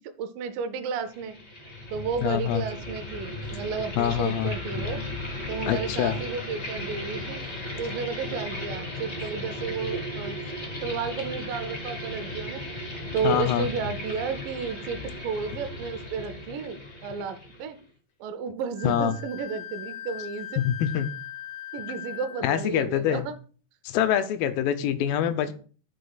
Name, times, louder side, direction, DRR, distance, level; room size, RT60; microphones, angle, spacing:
voice 1, 0.0-1.4 1.9-5.0 5.5-7.4 7.8-10.4 10.8-12.6 13.1-17.8 18.2-20.6 21.7-23.3, right 6 dB, 75° right, 8 dB, 2.2 m, -32 dB
sound 1, 1.1-17.8, left 1 dB, 30° left, 1.3 m, -36 dB
voice 2, 2.2-2.6 4.0-4.5 5.7-6.2 13.2-13.7 18.8-19.2 20.6-21.1 22.4-23.3 23.9-25.5, left 10 dB, 80° left, 10 dB, 2.3 m, -25 dB
Wind instrument woodwind instrument, 18.7-22.5, left 11 dB, 65° left, 1.4 m, -39 dB
13.0 x 4.6 x 2.3 m, 0.40 s
omnidirectional pair, 4.1 m